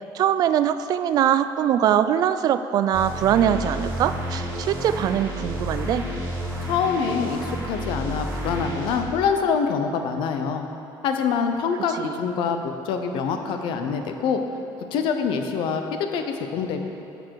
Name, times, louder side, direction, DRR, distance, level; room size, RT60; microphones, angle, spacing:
voice 1, 0.1-6.1 12.0-12.1, right 10 dB, 45° right, 12 dB, 0.4 m, -22 dB
sound 1, 2.9-9.0, equal, 25° right, 1.9 m, -31 dB
voice 2, 6.6-10.6 11.0-14.4 14.9-16.8, left 6 dB, 70° left, 6 dB, 0.9 m, -25 dB
13.0 x 6.7 x 4.7 m, 3.0 s
cardioid pair, 170°, 9 cm